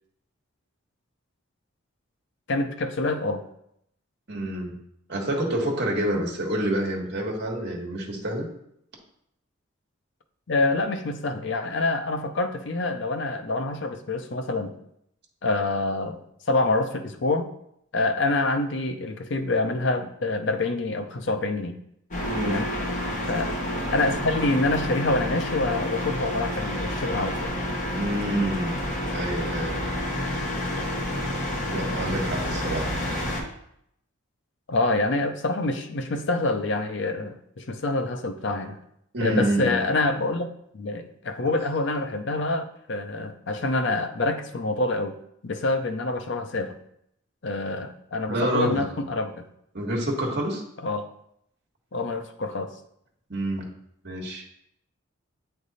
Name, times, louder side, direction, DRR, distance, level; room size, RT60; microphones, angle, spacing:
voice 1, 2.5-3.4 10.5-14.7 15.4-16.2 16.5-17.5 17.9-21.8 22.4-22.7 23.3-23.5 23.9-27.5 34.7-38.8 39.2-40.5 40.7-45.2 45.4-46.8 47.4-49.3 50.8-51.0 51.9-52.7, left 2 dB, 55° left, 8 dB, 0.6 m, -26 dB
voice 2, 4.3-4.8 5.1-8.5 22.3-22.6 27.9-28.8 29.1-29.8 31.7-32.9 39.1-39.8 48.3-48.8 49.7-50.6 53.3-53.7 54.0-54.4, right 1 dB, 50° right, -1 dB, 1.3 m, -27 dB
sound 1, 22.1-33.4, left 1 dB, 35° left, 1.1 m, -29 dB
8.3 x 3.3 x 4.1 m, 0.74 s
head